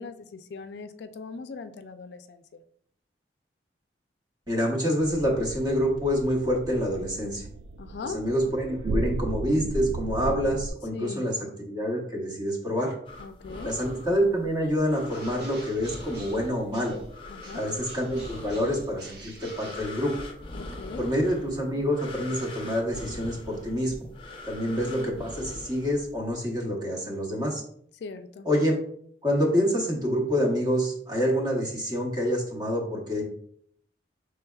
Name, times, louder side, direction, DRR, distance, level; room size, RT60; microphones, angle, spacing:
voice 1, 0.0-2.6 7.8-8.2 10.9-11.3 13.2-13.8 17.3-17.7 20.5-21.1 24.5-25.3 28.0-28.5, left 4 dB, 70° left, 9 dB, 0.3 m, -40 dB
voice 2, 4.5-7.5 8.0-11.4 11.7-12.9 13.6-17.0 17.5-20.1 21.0-24.1 24.5-27.6 28.4-28.7 29.2-33.2, equal, 25° right, -1 dB, 0.9 m, -27 dB
sound 1, 5.0-10.7, right 2 dB, 85° right, 0.3 m, -35 dB
sound 2, 13.1-26.4, left 2 dB, 30° left, 0.6 m, -42 dB
Bird, 15.0-17.1 17.4-20.5, right 3 dB, 70° right, 1.1 m, -49 dB
5.7 x 3.3 x 2.3 m, 0.65 s
head